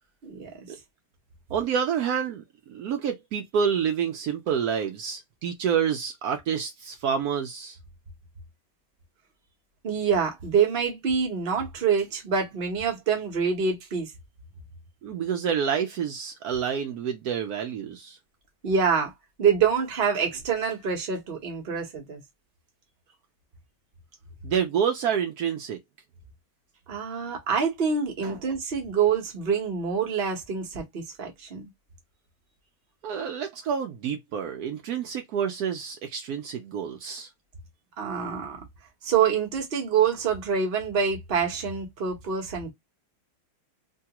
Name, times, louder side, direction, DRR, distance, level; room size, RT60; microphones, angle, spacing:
voice 1, 1.5-7.8 15.0-18.2 24.4-25.8 28.2-28.4 33.0-37.3, right 7 dB, 90° right, 0.8 m, -28 dB
voice 2, 9.8-14.1 18.6-19.1 19.4-22.2 26.9-31.7 38.0-38.6 39.0-42.7, right 6 dB, 45° right, 0.7 m, -26 dB
3.2 x 2.3 x 2.8 m
omnidirectional pair, 2.2 m